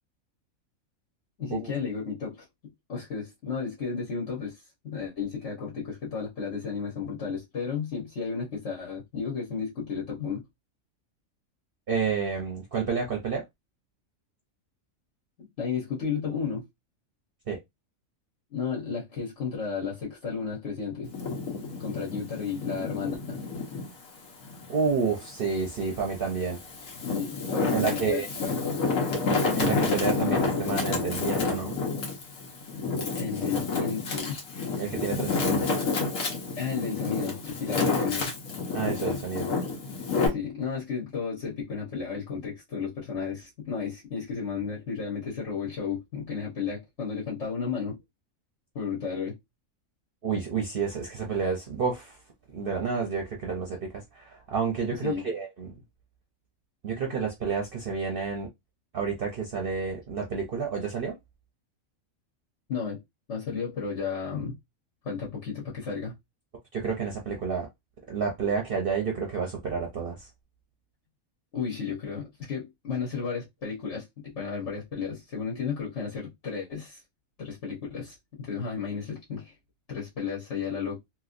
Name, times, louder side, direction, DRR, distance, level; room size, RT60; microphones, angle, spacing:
voice 1, 1.4-2.5 2.9-10.4 15.4-16.7 18.5-21.1 21.5-23.4 27.0-28.8 33.1-34.4 35.6-35.7 36.6-38.3 40.3-48.0 48.7-49.4 55.0-55.2 62.7-63.0 63.3-64.6 65.0-66.1 71.5-77.0 77.4-79.5 79.9-81.0, left 6 dB, 60° left, 1.4 m, -33 dB
voice 2, 11.9-13.4 17.5-17.6 24.7-26.6 27.7-28.3 29.5-31.8 34.8-35.6 38.7-39.5 50.2-52.2 52.5-55.8 56.8-58.5 58.9-61.2 66.7-67.7 68.1-70.3, right 5 dB, 50° right, 0.8 m, -30 dB
Wind, 21.1-23.9 24.4-25.7 26.3-40.3, left 4 dB, 80° left, 1.4 m, -29 dB
3.0 x 3.0 x 2.4 m
omnidirectional pair, 1.4 m